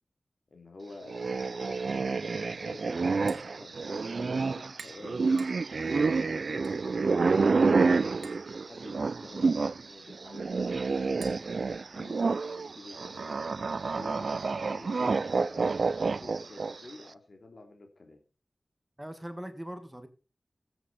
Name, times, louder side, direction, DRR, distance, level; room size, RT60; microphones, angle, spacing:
voice 1, 0.5-5.2 5.7-8.3 8.7-11.4 11.9-15.8 16.1-18.2, left 2 dB, 60° left, 4 dB, 3.1 m, -49 dB
sound 1, 1.1-9.8 10.1-16.9, right 4 dB, 70° right, 0.4 m, -28 dB
Tap, 3.1-12.6, right 4 dB, 90° right, 1.2 m, -55 dB
voice 2, 19.0-20.1, equal, 10° right, 8 dB, 1.7 m, -40 dB
14.5 x 8.0 x 4.2 m, 0.34 s
wide cardioid pair, 55°, 0 cm